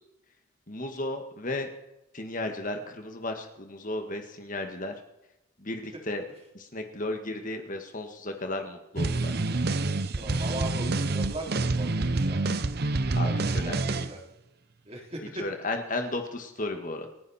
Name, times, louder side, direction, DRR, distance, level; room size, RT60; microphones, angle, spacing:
voice 1, 0.7-1.7 2.1-4.9 5.6-6.2 6.6-9.3 13.1-13.8 15.4-17.1, left 2 dB, 35° left, 5 dB, 1.8 m, -34 dB
sound 1, 9.0-14.1, right 2 dB, 45° right, 0.7 m, -27 dB
voice 2, 10.2-12.5 13.2-14.2 14.9-15.5, right 1 dB, 30° right, 0 dB, 3.6 m, -39 dB
29.0 x 10.5 x 4.4 m, 0.89 s
head